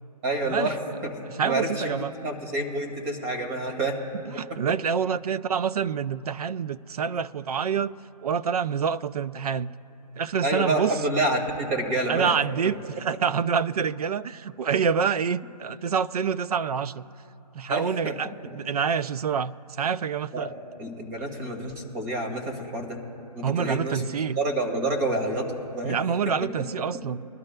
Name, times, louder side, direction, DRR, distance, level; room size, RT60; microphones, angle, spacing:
voice 1, 0.2-4.0 4.5-4.6 10.4-12.3 17.7-18.1 20.3-23.0 23.3-24.0 24.4-26.0 26.2-26.4, right 1 dB, 25° right, 3 dB, 2.0 m, -28 dB
voice 2, 1.3-2.1 4.4-7.9 8.2-9.7 10.2-10.9 12.1-17.1 17.5-20.5 23.4-24.4 25.8-27.2, right 7 dB, 65° right, 14 dB, 0.5 m, -27 dB
22.5 x 12.5 x 2.2 m, 2.8 s
hypercardioid pair, 160°, 21 cm